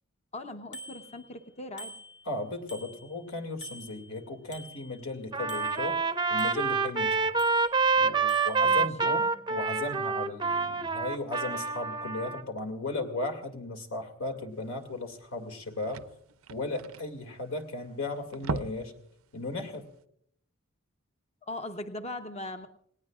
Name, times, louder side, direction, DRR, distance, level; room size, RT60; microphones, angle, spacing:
voice 1, 0.3-1.9 8.6-9.2 21.4-22.7, left 2 dB, 30° left, 7 dB, 0.8 m, -40 dB
Bicycle bell, 0.7-1.5 1.8-3.3 3.6-5.2 5.5-6.9 7.4-8.0 8.3-8.7, equal, 55° left, 3.2 m, -47 dB
voice 2, 2.3-6.0 6.3-7.2 8.0-16.0 16.5-19.0 19.3-19.9, left 2 dB, 80° left, 4 dB, 2.4 m, -36 dB
Trumpet, 5.3-12.4, right 4 dB, 20° right, 0.6 m, -27 dB
sound 1, 14.9-15.0 15.2-15.3 15.5-17.8 18.2-19.0 19.3-19.5 19.9-20.0, right 4 dB, 85° right, 0.5 m, -37 dB
29.5 x 18.5 x 2.4 m, 0.65 s
head